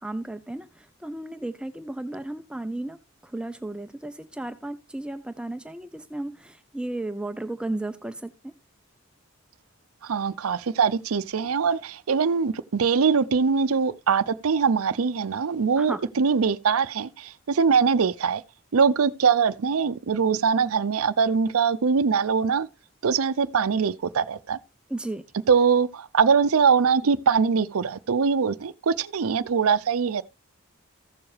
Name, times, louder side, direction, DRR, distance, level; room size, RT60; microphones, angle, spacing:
voice 1, 0.0-3.0 3.2-8.5 15.8-16.0 24.9-25.2, right 1 dB, 5° right, 0.5 m, -34 dB
voice 2, 10.0-18.4 18.7-22.7 23.0-24.6 25.5-30.2, right 6 dB, 90° right, 0.5 m, -22 dB
15.0 x 7.0 x 3.2 m
head